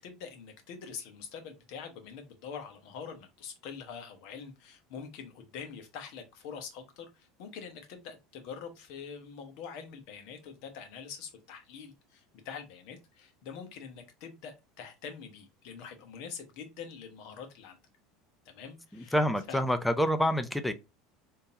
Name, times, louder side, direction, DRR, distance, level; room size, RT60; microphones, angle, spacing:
voice 1, 0.0-17.8 18.4-19.2 19.5-19.6, left 6 dB, 65° left, 1.1 m, -45 dB
voice 2, 18.9-20.7, equal, 5° left, 0.5 m, -27 dB
3.6 x 2.8 x 2.8 m
supercardioid pair, 110°, 0 cm